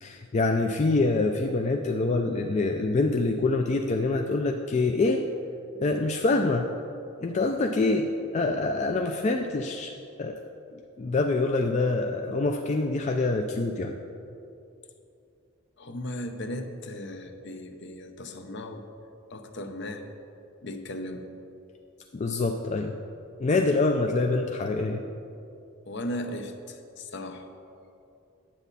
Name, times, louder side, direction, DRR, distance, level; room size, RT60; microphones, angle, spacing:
voice 1, 0.0-5.2 5.8-6.7 7.2-9.9 10.2-10.4 10.7-13.9 22.1-23.0 23.4-25.0, left 3 dB, 35° left, 3 dB, 0.4 m, -25 dB
voice 2, 15.8-18.8 19.3-20.0 20.6-21.3 25.9-27.5, left 1 dB, 55° left, 6 dB, 0.7 m, -36 dB
10.0 x 8.1 x 4.1 m, 2.7 s
head